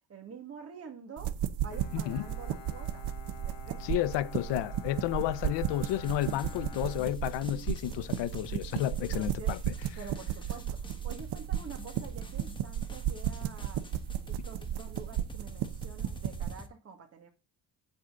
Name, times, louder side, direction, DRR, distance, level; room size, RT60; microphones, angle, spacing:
voice 1, 0.1-1.3 1.6-3.1 3.4-4.0 9.1-13.8 14.3-17.3, right 6 dB, 35° right, 2.0 m, -47 dB
sound 1, 1.2-16.5, right 11 dB, 65° right, 1.0 m, -35 dB
Bowed string instrument, 1.7-7.9, left 8 dB, 55° left, 1.2 m, -49 dB
voice 2, 1.9-2.3 3.8-9.6, left 14 dB, 85° left, 0.8 m, -31 dB
sound 2, 5.7-16.7, left 2 dB, 10° left, 1.1 m, -49 dB
8.6 x 8.2 x 3.9 m
cardioid pair, 170°, 42 cm